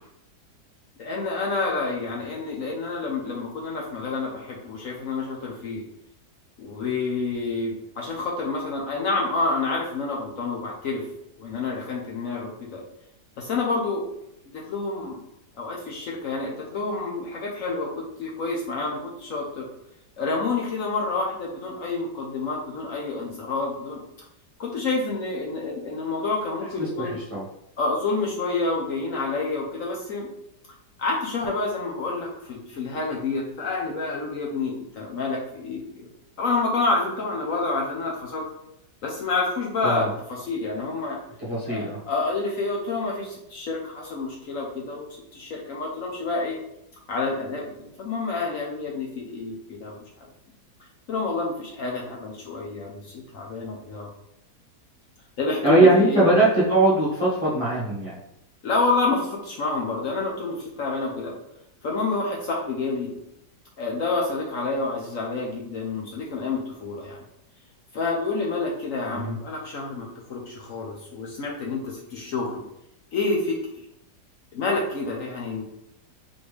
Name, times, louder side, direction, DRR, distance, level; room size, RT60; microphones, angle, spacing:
voice 1, 1.0-5.8 6.6-11.1 11.4-12.8 13.4-14.0 14.5-15.2 15.6-19.7 20.2-24.0 24.6-27.2 27.8-30.3 31.0-36.1 36.4-38.5 39.0-41.2 41.6-45.1 45.3-46.6 47.1-47.7 48.0-50.0 51.1-54.1 55.4-56.3 58.6-61.3 61.8-63.1 63.8-67.2 67.9-72.6 73.1-73.6 74.5-75.6, left 3 dB, 60° left, -2 dB, 1.0 m, -28 dB
voice 2, 26.8-27.4 39.8-40.1 41.4-42.0 55.6-58.2 69.1-69.4, right 2 dB, 20° right, -9 dB, 1.1 m, -21 dB
4.2 x 3.2 x 3.2 m, 0.81 s
omnidirectional pair, 1.8 m